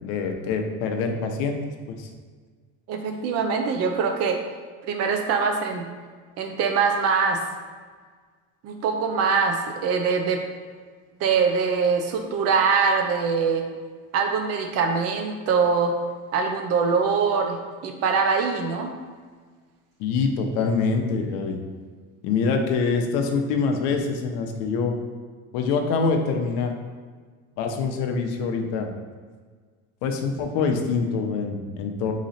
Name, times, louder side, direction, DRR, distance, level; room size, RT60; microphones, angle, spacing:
voice 1, 0.0-1.6 1.9-2.1 20.0-21.6 22.2-24.9 25.5-26.7 27.6-28.9 30.0-32.1, left 4 dB, 85° left, 4 dB, 0.7 m, -25 dB
voice 2, 2.9-4.4 4.9-5.9 6.4-7.4 8.6-10.4 11.2-13.6 14.1-15.9 16.3-18.9, right 5 dB, 50° right, 4 dB, 0.5 m, -23 dB
3.9 x 3.1 x 4.0 m, 1.6 s
cardioid pair, 160°, 34 cm